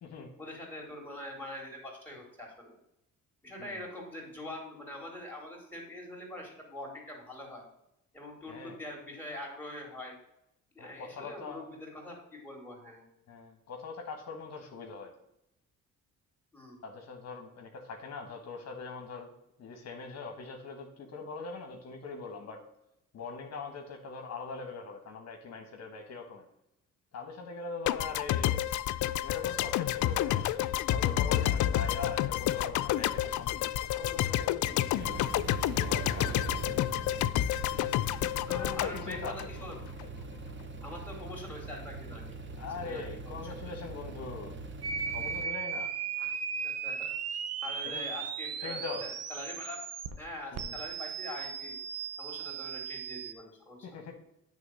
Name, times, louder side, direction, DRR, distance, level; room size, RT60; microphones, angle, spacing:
voice 1, 0.4-2.8 3.4-7.6 8.1-10.1 10.8-13.0 16.5-16.8 38.4-39.2 39.5-39.8 40.8-42.4 42.8-43.4 46.2-46.3 46.6-49.8 50.2-51.8 52.2-53.9, left 1 dB, 5° left, -1 dB, 3.5 m, -44 dB
voice 2, 8.5-8.8 10.8-11.7 13.3-15.1 16.8-19.3 19.6-22.6 23.1-26.4 27.1-28.7 29.2-35.2 35.7-36.9 38.5-39.4 42.5-44.6 45.1-45.9 47.8-48.1 48.6-49.1 50.5-50.8 53.8-54.1, left 4 dB, 60° left, 3 dB, 1.3 m, -42 dB
sound 1, 27.9-40.1, left 13 dB, 75° left, 0.5 m, -30 dB
sound 2, 35.0-45.5, right 3 dB, 40° right, 1.1 m, -42 dB
sound 3, 44.8-50.1 50.5-53.3, right 6 dB, 55° right, 0.9 m, -36 dB
9.0 x 3.6 x 6.4 m, 0.84 s
cardioid pair, 90°, 30 cm